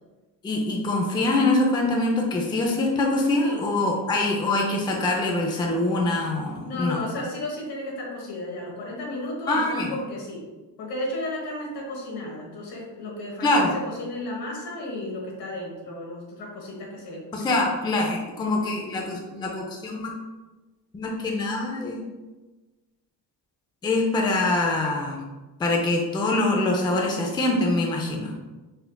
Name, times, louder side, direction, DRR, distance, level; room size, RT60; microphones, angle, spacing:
voice 1, 0.4-7.0 9.5-10.0 13.4-13.7 17.3-20.1 20.9-22.0 23.8-25.2 25.6-28.3, left 2 dB, 10° left, 0 dB, 0.4 m, -24 dB
voice 2, 6.6-10.4 10.8-17.6, left 1 dB, 75° left, -2 dB, 1.2 m, -33 dB
4.2 x 2.7 x 2.2 m, 1.2 s
cardioid pair, 105°, 40 cm